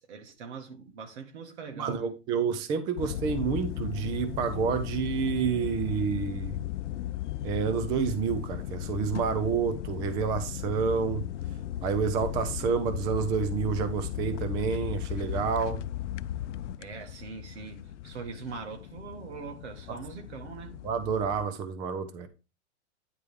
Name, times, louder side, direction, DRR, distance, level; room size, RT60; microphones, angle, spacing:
voice 1, 0.0-2.1 16.8-20.8, right 5 dB, 70° right, 2.0 m, -42 dB
voice 2, 1.8-6.6 7.4-11.2 11.8-15.9 19.9-20.0 20.8-22.3, right 6 dB, 15° right, 0.3 m, -29 dB
sound 1, 3.0-21.5, left 12 dB, 85° left, 0.6 m, -36 dB
9.8 x 3.4 x 4.6 m
hypercardioid pair, 145°, 35 cm